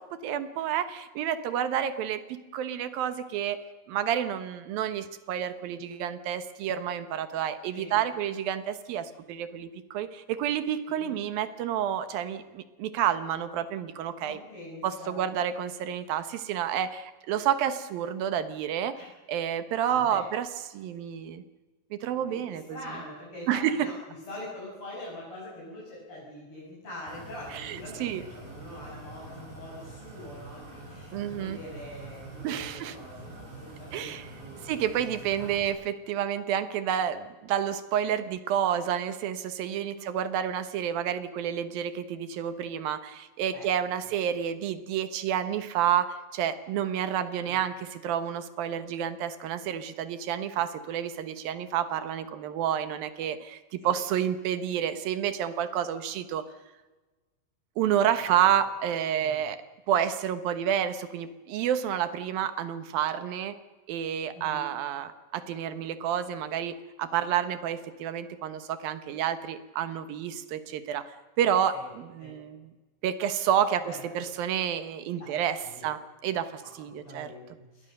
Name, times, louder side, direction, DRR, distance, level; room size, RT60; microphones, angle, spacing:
voice 1, 0.0-3.6 3.9-14.4 14.8-19.0 19.3-21.4 21.9-22.8 23.5-23.8 27.5-28.2 31.1-31.6 32.4-32.9 33.9-34.3 34.6-56.5 57.8-59.6 59.9-63.5 63.9-72.6 73.0-77.3, right 9 dB, 80° right, 11 dB, 3.0 m, -29 dB
voice 2, 7.7-8.0 11.0-11.1 14.2-15.2 18.9-19.1 19.8-20.3 22.2-23.9 24.3-34.8 35.4-35.5 39.9-40.0 43.5-43.7 47.5-47.6 53.8-53.9 58.2-58.4 59.2-59.5 64.3-64.7 71.7-71.9 72.2-72.4 73.8-74.2 75.2-75.9 76.9-77.9, left 1 dB, 35° left, -6 dB, 7.8 m, -44 dB
sound 1, 27.1-35.7, right 2 dB, 65° right, 9.7 m, -45 dB
28.0 x 21.5 x 6.7 m, 1.2 s
omnidirectional pair, 4.1 m